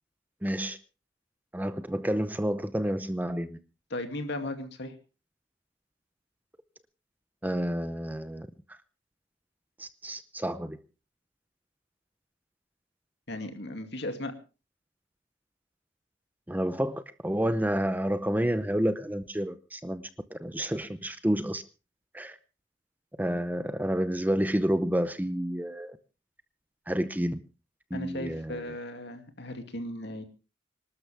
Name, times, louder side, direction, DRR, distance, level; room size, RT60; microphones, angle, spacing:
voice 1, 0.4-0.8 1.5-3.6 7.4-8.5 9.8-10.8 16.5-20.0 20.3-21.6 22.1-22.4 23.2-26.0 26.9-27.4 27.9-28.6, equal, 10° right, 0.7 m, -29 dB
voice 2, 3.9-4.9 13.3-14.3 27.9-30.2, left 1 dB, 60° left, 2.5 m, -36 dB
26.0 x 12.5 x 3.4 m
head